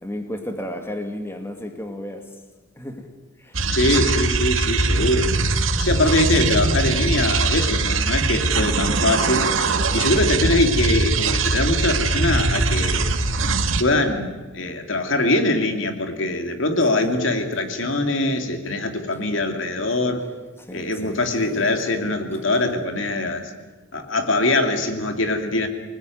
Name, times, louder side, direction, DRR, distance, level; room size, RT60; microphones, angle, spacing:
voice 1, 0.0-2.2 2.8-3.1 3.4-3.7 4.0-4.1 16.9-17.1 20.6-21.2 21.5-21.7, left 1 dB, 10° left, 5 dB, 2.2 m, -33 dB
sound 1, 3.5-13.8, right 3 dB, 80° right, 1.9 m, -21 dB
voice 2, 3.7-5.3 5.8-9.4 9.9-13.1 13.8-20.2 20.7-23.5 23.9-25.7, left 2 dB, 70° left, 6 dB, 2.7 m, -22 dB
25.5 x 20.0 x 9.4 m, 1.2 s
head